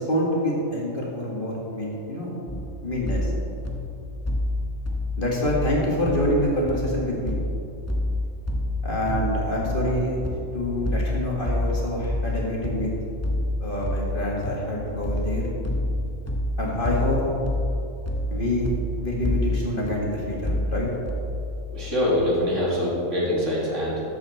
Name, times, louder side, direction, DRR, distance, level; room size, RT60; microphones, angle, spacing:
voice 1, 0.0-2.3 2.8-3.3 5.2-7.4 8.8-10.2 10.5-12.9 13.6-15.4 16.6-17.4 18.3-18.7 19.0-20.9, left 1 dB, 40° left, -3 dB, 1.9 m, -26 dB
sound 1, 2.5-21.5, left 1 dB, 15° left, 0.8 m, -29 dB
voice 2, 21.7-24.0, left 1 dB, 60° right, -5 dB, 2.7 m, -24 dB
13.0 x 7.7 x 4.2 m, 2.7 s
omnidirectional pair, 1.4 m